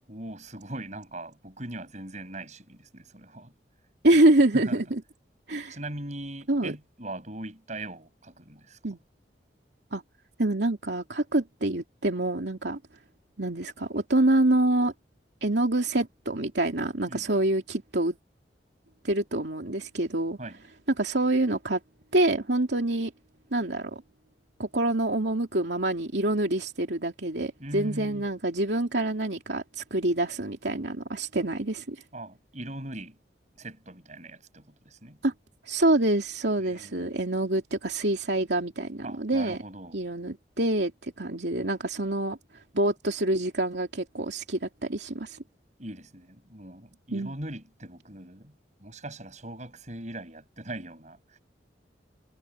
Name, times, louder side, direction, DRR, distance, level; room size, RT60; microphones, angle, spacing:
voice 1, 0.1-3.5 4.5-4.8 5.7-8.8 17.1-17.4 20.4-20.6 27.6-28.3 32.1-33.2 33.6-35.2 36.6-37.1 39.0-40.0 45.8-48.5 48.8-51.2, right 1 dB, 45° right, 7.8 m, -40 dB
voice 2, 4.0-5.0 5.5-5.8 6.5-6.7 8.8-9.0 9.9-10.0 10.4-12.8 13.4-14.9 15.4-18.2 19.0-20.4 21.0-21.8 22.1-23.1 23.5-24.0 24.6-32.0 35.2-35.3 35.6-39.6 39.9-42.4 42.7-45.4 47.1-47.3, right 1 dB, 75° right, 2.7 m, -26 dB
head